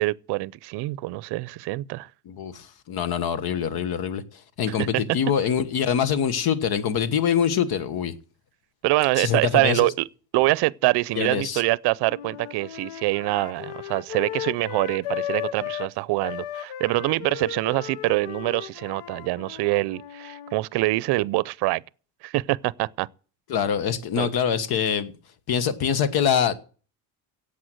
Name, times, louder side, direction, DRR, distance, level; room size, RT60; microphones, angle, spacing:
voice 1, 0.0-2.1 4.7-4.9 8.8-10.1 10.3-21.8 22.2-23.1 24.2-24.3, right 21 dB, 75° right, 0.6 m, -25 dB
voice 2, 2.2-8.1 9.2-9.9 11.2-11.6 23.5-25.1 25.5-26.5, left 8 dB, 65° left, 1.5 m, -24 dB
Flute - D natural minor - bad-pitch-staccato, 12.1-15.9 16.2-20.6, left 12 dB, 85° left, 1.0 m, -35 dB
14.0 x 8.4 x 7.9 m
cardioid pair, 90°, 41 cm